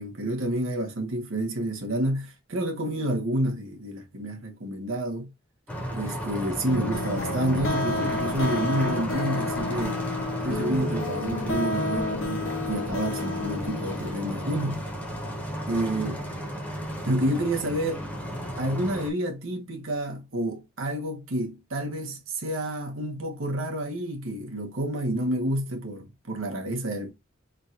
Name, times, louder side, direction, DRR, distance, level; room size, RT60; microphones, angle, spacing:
voice 1, 0.0-5.3 5.9-10.0 10.4-14.8 15.7-16.2 17.0-18.1 18.6-27.1, right 1 dB, 80° right, 1.2 m, -29 dB
sound 1, 5.7-19.1, equal, 5° left, 0.9 m, -33 dB
sound 2, 6.7-14.2, left 2 dB, 70° left, 0.6 m, -31 dB
3.7 x 2.5 x 4.2 m
head